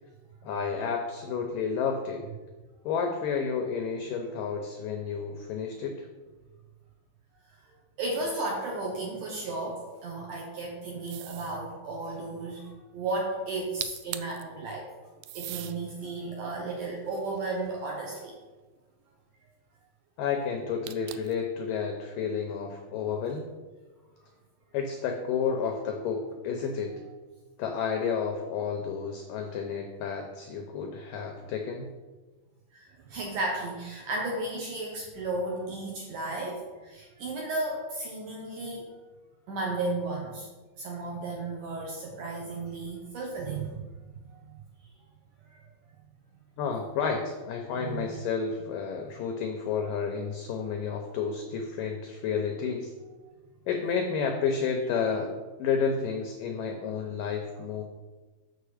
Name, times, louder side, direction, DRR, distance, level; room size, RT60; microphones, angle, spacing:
voice 1, 0.4-2.2 2.9-6.1 20.2-23.5 24.7-26.9 27.6-31.9 46.6-52.9 53.7-55.3 55.6-57.8, left 6 dB, 85° left, 3 dB, 1.9 m, -31 dB
voice 2, 8.0-14.9 15.3-18.4 32.7-38.9 39.5-40.5 40.8-43.8 44.3-44.4 45.5-45.6 47.8-48.0, right 2 dB, 70° right, -1 dB, 2.0 m, -34 dB
sound 1, 11.1-11.6 13.5-13.6 13.8-14.4 15.2-15.8 16.4-17.9 20.9-21.4, right 14 dB, 85° right, 2.1 m, -40 dB
6.7 x 6.6 x 4.9 m, 1.3 s
omnidirectional pair, 4.7 m